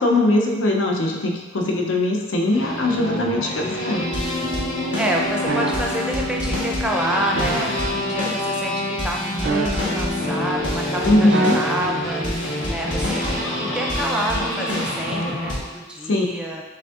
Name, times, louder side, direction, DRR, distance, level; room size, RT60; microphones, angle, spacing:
voice 1, 0.0-4.0 11.0-11.6 16.0-16.3, left 1 dB, 90° left, 1 dB, 0.6 m, -20 dB
sound 1, 2.5-15.6, left 1 dB, 70° left, 1.3 m, -26 dB
voice 2, 5.0-16.6, right 1 dB, 5° right, -1 dB, 0.4 m, -28 dB
sound 2, 5.5-6.1 7.4-8.0 9.4-10.3 11.3-12.1 13.2-13.4, right 3 dB, 65° right, 0.4 m, -27 dB
5.1 x 3.5 x 2.4 m, 1.2 s
head